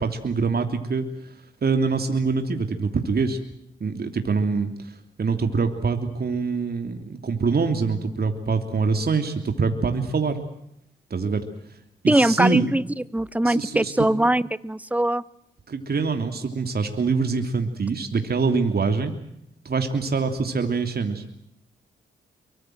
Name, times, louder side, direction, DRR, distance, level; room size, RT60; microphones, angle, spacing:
voice 1, 0.0-3.4 3.8-10.4 11.1-11.8 12.0-12.7 13.4-14.1 15.7-19.1 19.6-21.2, right 4 dB, 50° right, 6 dB, 3.0 m, -25 dB
voice 2, 12.1-12.8 13.1-15.2, right 1 dB, 5° right, 19 dB, 1.0 m, -21 dB
24.5 x 24.0 x 7.8 m, 0.76 s
hypercardioid pair, 40°, 21 cm